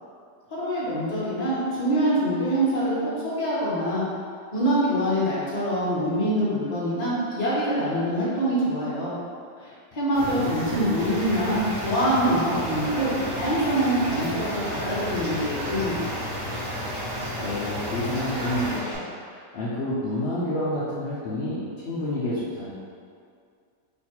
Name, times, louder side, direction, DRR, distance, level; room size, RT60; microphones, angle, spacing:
voice 1, 0.5-4.1 4.5-9.1 9.6-16.1, right 1 dB, 30° left, -9 dB, 0.9 m, -25 dB
sound 1, 10.1-18.8, equal, 40° right, 0.9 m, -33 dB
voice 2, 10.2-10.5 17.4-22.7, left 1 dB, 70° left, -9 dB, 0.6 m, -29 dB
Bathtub (filling or washing), 11.0-19.0, equal, 70° right, 1.6 m, -37 dB
3.1 x 2.4 x 4.3 m, 2.2 s
omnidirectional pair, 1.8 m